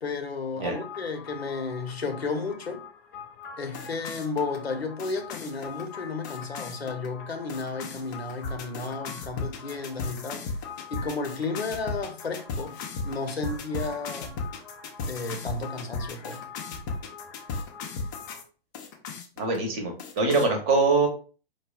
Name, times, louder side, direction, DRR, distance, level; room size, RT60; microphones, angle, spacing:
voice 1, 0.0-2.8 3.6-10.5 10.9-12.8 13.0-14.4 15.1-16.4, left 3 dB, 80° left, 0.8 m, -33 dB
sound 1, 0.7-18.4 18.7-19.6 20.0-20.5, left 4 dB, 20° left, 0.4 m, -37 dB
voice 2, 19.4-21.1, right 3 dB, 25° right, 0.8 m, -23 dB
4.6 x 2.3 x 2.3 m
figure-of-eight pair, 115°, 31 cm